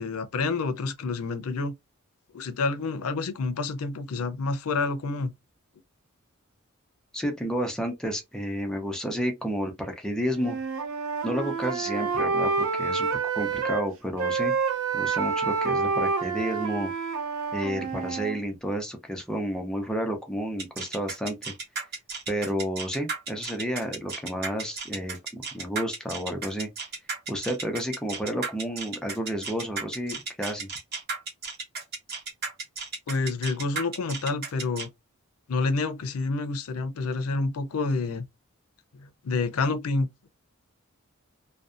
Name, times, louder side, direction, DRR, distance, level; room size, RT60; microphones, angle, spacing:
voice 1, 0.0-1.7 2.3-5.3 33.1-34.9 35.5-38.3 38.9-40.1, left 3 dB, 85° left, 0.5 m, -28 dB
voice 2, 7.1-10.6 11.2-13.1 13.3-14.5 14.9-16.9 17.5-21.5 22.3-26.7 27.3-30.7, equal, 5° left, 0.5 m, -31 dB
Wind instrument woodwind instrument, 10.4-13.9 14.2-18.4, right 5 dB, 80° right, 0.6 m, -28 dB
sound 1, 20.6-34.9, right 4 dB, 50° right, 1.0 m, -34 dB
2.6 x 2.2 x 2.3 m
head